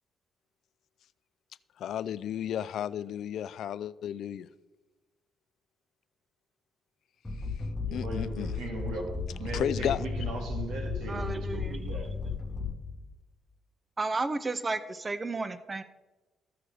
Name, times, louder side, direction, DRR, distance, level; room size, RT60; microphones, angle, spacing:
voice 1, 1.8-4.5 7.9-8.5 9.5-10.0, left 10 dB, 70° left, 17 dB, 0.3 m, -33 dB
sound 1, 7.2-13.1, left 4 dB, 15° left, 1.0 m, -35 dB
voice 2, 7.9-9.1 9.4-12.1, right 2 dB, 85° right, 1 dB, 1.9 m, -38 dB
voice 3, 11.1-11.7 14.0-15.8, right 3 dB, 25° right, 13 dB, 0.4 m, -32 dB
14.5 x 6.1 x 3.3 m, 1.2 s
cardioid pair, 90°, 0 cm